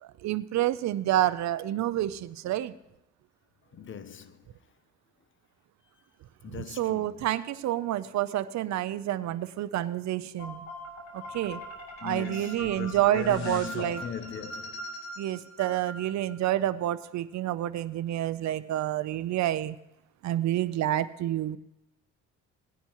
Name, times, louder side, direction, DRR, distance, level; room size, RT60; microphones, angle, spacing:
voice 1, 0.0-2.7 6.6-10.7 11.1-11.6 12.0-14.0 15.2-19.8 20.2-21.6, right 13 dB, 65° right, 0.6 m, -28 dB
voice 2, 3.7-4.5 6.4-7.3 12.0-14.9, left 7 dB, 40° left, 0.8 m, -39 dB
sound 1, 10.4-16.5, equal, 65° left, 3.8 m, -42 dB
18.0 x 10.0 x 3.0 m
cardioid pair, 90°, 30 cm